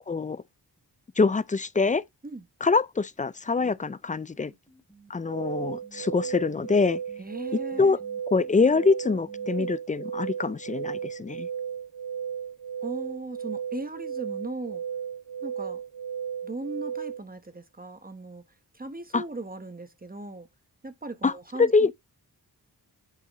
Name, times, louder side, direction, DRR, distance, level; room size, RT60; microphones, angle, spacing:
voice 1, 0.1-0.4 1.2-2.0 2.6-4.5 5.1-7.0 7.8-8.0 8.3-11.5 19.1-19.2 21.2-21.3 21.6-21.9, left 4 dB, 20° left, 0.4 m, -24 dB
sound 1, 3.4-9.7, right 2 dB, 5° left, 2.9 m, -53 dB
sound 2, 5.3-17.2, right 7 dB, 60° right, 0.7 m, -35 dB
voice 2, 7.2-8.0 9.6-9.7 12.8-14.8 15.4-15.8 16.4-18.4 18.7-20.5 20.8-21.9, right 2 dB, 20° right, 1.0 m, -38 dB
8.4 x 5.9 x 2.9 m
wide cardioid pair, 125°, 40 cm